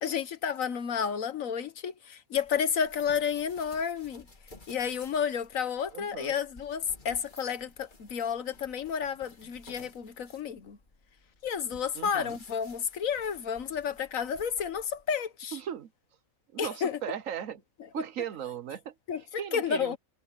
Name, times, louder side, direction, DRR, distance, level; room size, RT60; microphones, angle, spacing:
voice 1, 0.0-4.3 4.7-10.8 11.4-15.6 16.6-17.0 19.1-20.0, left 7 dB, 65° left, 1.4 m, -31 dB
sound 1, 2.3-15.1, left 3 dB, 35° left, 2.0 m, -55 dB
voice 2, 5.9-6.3 11.9-12.4 15.5-15.9 16.5-17.6 17.9-18.9 19.4-20.0, right 9 dB, 65° right, 1.2 m, -37 dB
omnidirectional pair, 1.5 m